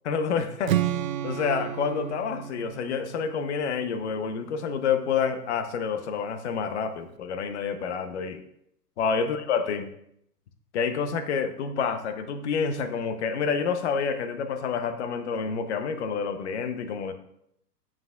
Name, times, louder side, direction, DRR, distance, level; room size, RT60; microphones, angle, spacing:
voice 1, 0.0-0.8 1.2-8.4 9.0-9.9 10.7-17.1, left 6 dB, 45° left, 8 dB, 0.7 m, -28 dB
Strum, 0.7-4.8, right 11 dB, 55° right, 0.5 m, -32 dB
8.8 x 5.9 x 2.3 m, 0.74 s
hypercardioid pair, 145°, 49 cm